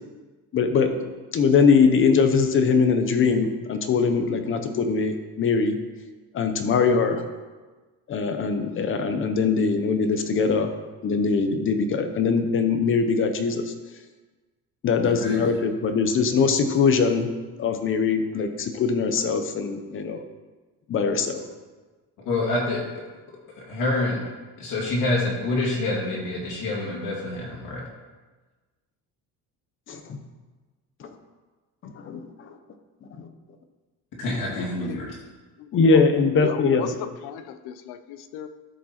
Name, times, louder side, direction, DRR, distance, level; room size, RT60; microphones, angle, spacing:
voice 1, 0.5-5.8 6.3-7.2 8.1-10.7 11.0-13.7 14.8-17.3 17.6-20.2 20.9-21.4 29.9-30.2 31.0-31.1 31.8-32.5 33.2-33.3 35.7-36.9, left 5 dB, 35° left, 7 dB, 0.8 m, -22 dB
voice 2, 15.0-15.4 22.2-23.0 23.5-24.2 24.6-27.9 34.2-35.1, left 2 dB, 55° left, -4 dB, 2.3 m, -27 dB
voice 3, 34.5-35.2 35.6-38.5, left 9 dB, 75° left, 11 dB, 0.8 m, -36 dB
13.5 x 5.2 x 4.3 m, 1.3 s
cardioid pair, 165°, 38 cm